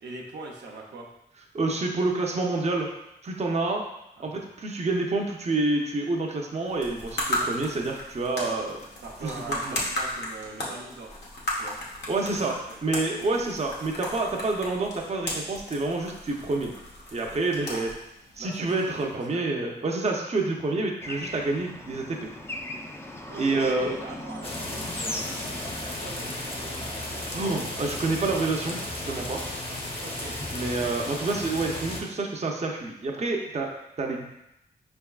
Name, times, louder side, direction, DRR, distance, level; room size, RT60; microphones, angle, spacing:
voice 1, 0.0-1.1 4.2-4.4 9.0-11.2 11.5-11.8 12.2-12.4 12.7-12.8 13.4-13.5 17.7-18.0 18.4-19.5 23.3-25.4 25.9-27.4 30.0-30.4, right 2 dB, 80° right, -1 dB, 0.6 m, -41 dB
voice 2, 1.5-2.9 3.2-3.8 4.2-8.8 9.2-9.3 9.6-9.8 12.1-16.7 17.1-17.9 18.4-22.3 23.4-23.9 27.3-29.4 30.5-33.7 34.0-34.2, right 3 dB, 40° right, 0 dB, 0.6 m, -28 dB
sound 1, 6.7-19.2, left 1 dB, 80° left, 1.0 m, -35 dB
Bird / Traffic noise roadway noise, 21.0-27.8, left 1 dB, 15° left, 0.4 m, -39 dB
sound 2, 24.4-32.0, left 1 dB, 35° left, 0.9 m, -34 dB
5.2 x 3.5 x 2.3 m, 0.86 s
cardioid pair, 65°, 17 cm